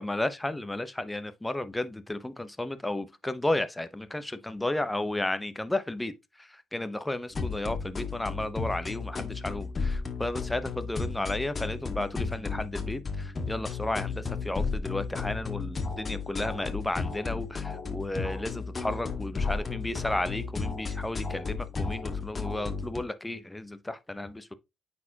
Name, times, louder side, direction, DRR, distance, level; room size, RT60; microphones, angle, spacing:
voice 1, 0.0-6.1 6.4-24.5, left 1 dB, 10° left, 0.8 m, -33 dB
sound 1, 7.3-23.0, left 4 dB, 35° left, 1.4 m, -34 dB
9.0 x 4.3 x 2.8 m
cardioid pair, 90°, 0 cm